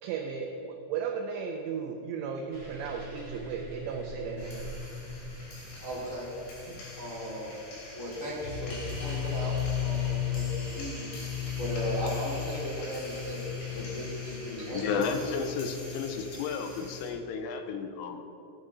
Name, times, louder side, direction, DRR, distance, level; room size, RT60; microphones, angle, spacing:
voice 1, 0.0-4.7 6.7-6.8, right 6 dB, 85° right, 2 dB, 2.4 m, -35 dB
sound 1, 2.5-7.5, right 1 dB, 65° right, 1.2 m, -45 dB
sound 2, 4.4-17.1, left 7 dB, 65° left, 4.2 m, -36 dB
voice 2, 5.8-6.3 7.0-7.5 7.9-9.5 9.8-11.1 11.5-15.0, equal, 50° left, -7 dB, 1.6 m, -36 dB
voice 3, 14.7-18.2, left 5 dB, 90° left, 6 dB, 3.2 m, -32 dB
17.0 x 8.7 x 2.7 m, 2.8 s
omnidirectional pair, 5.7 m